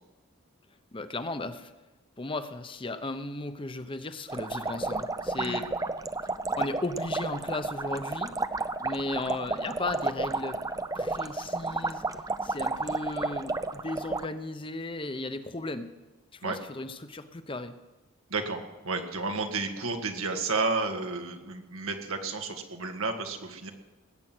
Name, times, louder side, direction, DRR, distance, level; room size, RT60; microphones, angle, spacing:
voice 1, 0.9-1.7 2.2-5.7 6.2-6.3 6.6-8.3 8.8-10.6 10.9-12.0 12.4-15.9 16.3-17.8, left 2 dB, 25° left, 10 dB, 0.8 m, -35 dB
sound 1, 4.3-14.3, right 3 dB, 15° right, 0.5 m, -32 dB
voice 2, 18.3-23.7, right 3 dB, 85° right, 5 dB, 1.9 m, -32 dB
20.0 x 9.1 x 6.1 m, 1.1 s
head